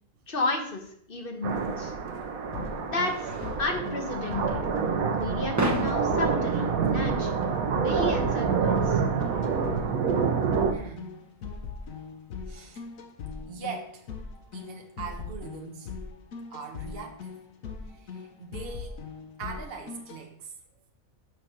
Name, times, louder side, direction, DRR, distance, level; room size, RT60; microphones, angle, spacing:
voice 1, 0.3-1.9 2.9-3.3 3.6-4.6 5.1-7.3 7.7-9.0, left 2 dB, 40° left, 3 dB, 1.4 m, -32 dB
sound 1, 1.4-10.7, right 6 dB, 85° right, 1.2 m, -27 dB
sound 2, 1.7-13.0, right 1 dB, 15° right, 0.7 m, -39 dB
sound 3, 2.5-20.2, left 5 dB, 75° left, 1.4 m, -40 dB
voice 2, 10.7-11.2 12.5-12.8 13.5-14.1 14.5-15.9 16.5-17.3 17.9-19.0 19.4-20.5, right 5 dB, 45° right, 2 dB, 1.3 m, -41 dB
6.6 x 5.1 x 6.0 m, 0.67 s
omnidirectional pair, 1.4 m